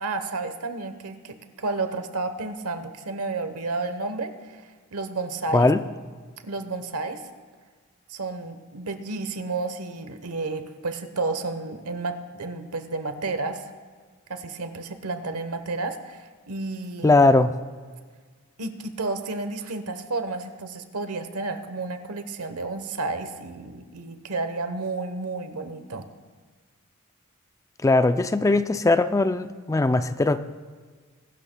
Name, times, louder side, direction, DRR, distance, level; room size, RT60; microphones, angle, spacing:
voice 1, 0.0-4.7 4.9-5.7 6.4-7.2 8.1-13.6 14.3-17.2 18.6-26.1, right 3 dB, 85° right, 9 dB, 1.0 m, -31 dB
voice 2, 17.0-17.5 27.8-30.4, left 2 dB, 15° left, 11 dB, 0.3 m, -19 dB
22.5 x 12.0 x 2.2 m, 1.5 s
head